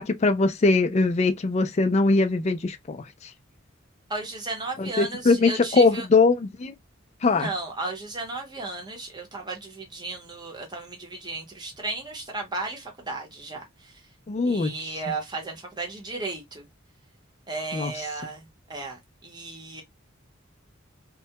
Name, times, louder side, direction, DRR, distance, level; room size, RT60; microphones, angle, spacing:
voice 1, 0.0-3.0 4.8-6.7 7.2-7.5 14.3-14.7 17.7-17.9, left 3 dB, 35° left, 0.3 m, -21 dB
voice 2, 4.1-6.1 7.2-14.0 14.5-16.7 17.5-19.8, right 3 dB, 20° right, 0.8 m, -34 dB
2.2 x 2.1 x 2.7 m
head